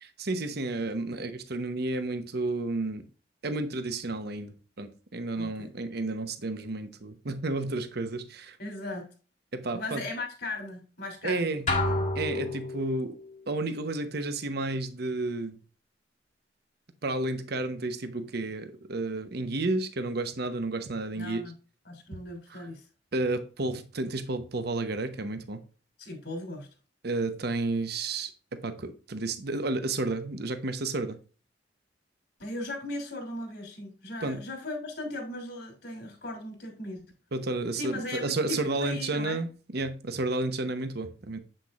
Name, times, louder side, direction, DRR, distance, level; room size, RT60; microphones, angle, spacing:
voice 1, 0.2-3.1 3.4-8.6 9.5-10.0 11.2-11.7 12.1-13.2 13.5-15.6 17.0-21.4 22.5-22.7 23.1-25.6 27.0-31.2 34.2-34.4 37.3-41.4, right 2 dB, 60° right, 0.9 m, -31 dB
voice 2, 5.4-5.7 8.6-9.1 9.7-11.8 21.1-21.5 21.8-22.9 26.0-26.7 32.4-37.0 37.7-39.4, left 2 dB, 65° left, 2.9 m, -37 dB
sound 1, 11.7-13.1, left 2 dB, 45° left, 1.7 m, -29 dB
7.7 x 6.6 x 2.4 m
head